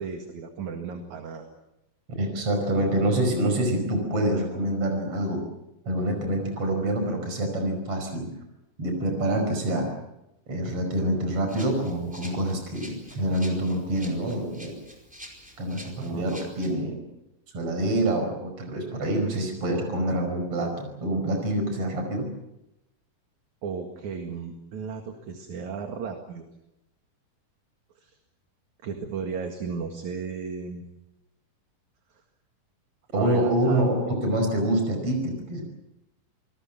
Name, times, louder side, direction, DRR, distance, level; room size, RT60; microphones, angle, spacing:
voice 1, 0.0-1.5 2.8-2.9 16.0-16.2 23.6-26.5 28.0-28.2 28.8-30.8 32.1-32.2 33.1-33.9, right 5 dB, 60° right, 4 dB, 3.1 m, -34 dB
voice 2, 2.2-5.4 5.9-8.3 8.8-9.9 10.5-14.7 15.6-17.0 17.5-22.3 33.1-35.7, right 1 dB, 40° right, 4 dB, 6.1 m, -26 dB
Rattle (instrument), 11.5-16.7, equal, ahead, 4.4 m, -47 dB
27.5 x 20.0 x 7.4 m, 0.91 s
omnidirectional pair, 4.0 m